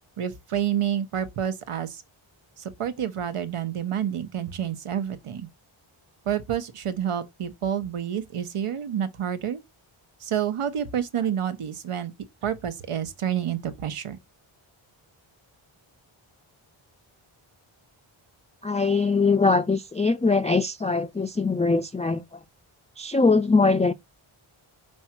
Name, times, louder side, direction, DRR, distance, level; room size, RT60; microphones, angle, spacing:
voice 1, 0.2-2.0 2.6-5.5 6.3-9.6 10.2-12.1 12.4-14.2, right 9 dB, 85° right, 1.1 m, -29 dB
voice 2, 18.6-22.2 23.0-23.9, left 4 dB, 15° left, 0.3 m, -22 dB
5.4 x 4.8 x 4.4 m
wide cardioid pair, 105°, 50 cm